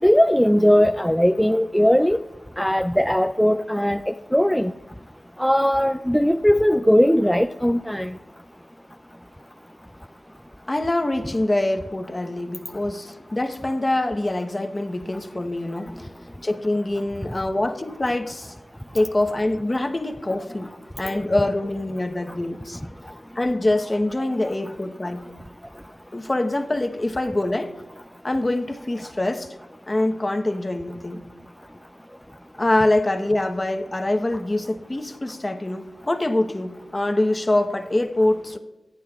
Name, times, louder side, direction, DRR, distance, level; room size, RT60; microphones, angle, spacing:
voice 1, 0.0-2.2 2.6-4.7 5.4-8.1, equal, 5° left, 0.4 m, -19 dB
voice 2, 10.7-16.1 16.4-18.5 18.9-22.8 23.3-25.3 26.1-27.7 28.2-29.6 29.9-31.2 32.6-38.6, left 1 dB, 30° left, 1.0 m, -24 dB
25.0 x 9.3 x 2.4 m
wide cardioid pair, 65°, 0 cm